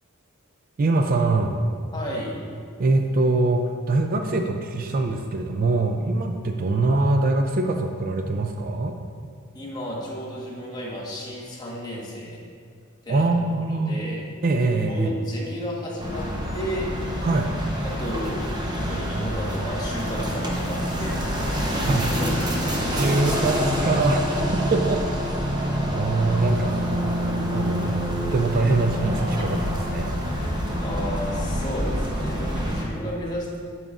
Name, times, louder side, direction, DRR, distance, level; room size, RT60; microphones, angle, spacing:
voice 1, 0.8-1.6 2.8-8.9 13.1-14.0 14.4-15.2 17.2-17.5 21.9-22.1 22.9-25.1 25.9-26.8 27.5-27.9 28.2-30.2, right 2 dB, 45° right, 5 dB, 0.4 m, -23 dB
voice 2, 1.9-2.4 9.5-12.4 13.0-13.3 13.7-14.2 14.9-16.3 16.5-16.9 17.8-22.9 27.8-28.0 30.3-33.6, equal, 20° left, -4 dB, 1.2 m, -33 dB
sound 1, 16.0-32.8, equal, 20° right, 0.8 m, -26 dB
8.8 x 6.6 x 2.4 m, 2.2 s
head